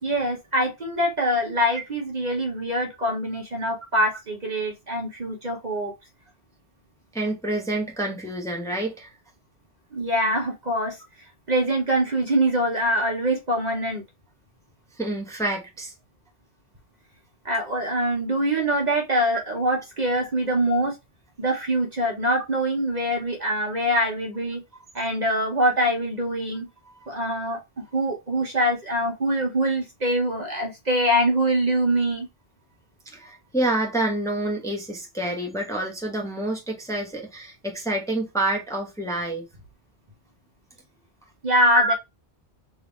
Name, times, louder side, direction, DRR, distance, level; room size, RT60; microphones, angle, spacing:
voice 1, 0.0-5.9 9.9-11.0 11.5-14.0 17.4-20.9 21.4-24.6 24.9-26.7 27.1-32.3 41.4-41.8, right 1 dB, 40° right, 1.2 m, -24 dB
voice 2, 7.1-9.1 15.0-15.9 26.8-27.1 33.1-39.4 41.7-41.9, right 1 dB, 5° left, 1.0 m, -27 dB
3.5 x 3.5 x 2.9 m
omnidirectional pair, 1.1 m